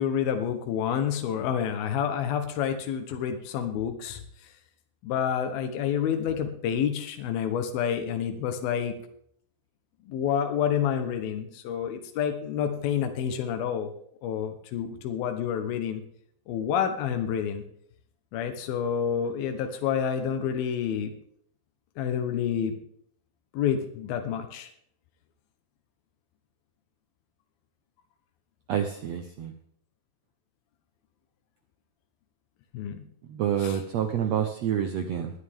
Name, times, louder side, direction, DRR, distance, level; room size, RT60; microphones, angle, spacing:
voice 1, 0.0-4.2 5.0-9.0 10.1-13.9 14.2-16.0 16.5-17.6 18.3-21.1 22.0-22.8 23.5-24.7 32.7-33.0 33.6-33.8, left 8 dB, 80° left, 6 dB, 2.9 m, -28 dB
voice 2, 28.7-29.5 33.3-35.3, right 9 dB, 75° right, 6 dB, 1.5 m, -28 dB
20.0 x 9.9 x 3.6 m, 0.66 s
omnidirectional pair, 4.2 m